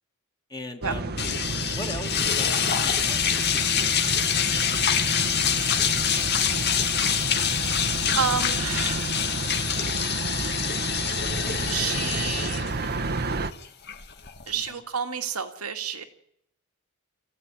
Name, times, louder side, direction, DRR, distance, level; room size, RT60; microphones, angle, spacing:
voice 1, 0.5-1.2 1.5-3.2 3.6-4.4 4.9-5.2 14.7-14.8, left 2 dB, 20° left, 4 dB, 2.1 m, -41 dB
sound 1, 0.8-13.5, right 3 dB, 45° right, 1.1 m, -31 dB
sound 2, 1.2-14.7, left 8 dB, 50° left, 2.1 m, -26 dB
voice 2, 8.1-9.3 11.7-12.9 14.5-16.0, right 7 dB, 85° right, 7 dB, 2.3 m, -30 dB
25.5 x 15.5 x 9.9 m, 0.76 s
head